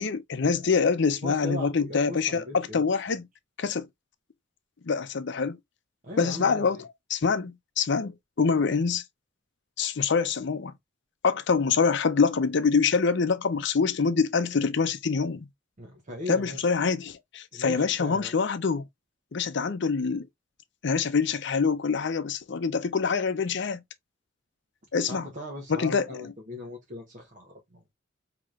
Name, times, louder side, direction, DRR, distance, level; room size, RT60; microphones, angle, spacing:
voice 1, 0.0-3.3 3.6-3.9 4.9-5.6 6.2-6.8 7.1-9.0 9.8-10.7 11.2-15.5 16.3-18.8 19.3-20.3 20.8-23.8 24.9-25.3 25.7-26.3, left 5 dB, 65° left, 0.6 m, -25 dB
voice 2, 1.2-2.8 6.0-6.8 15.8-16.6 17.5-18.3 25.1-27.9, left 1 dB, 40° right, 0.9 m, -39 dB
4.8 x 2.9 x 2.4 m
head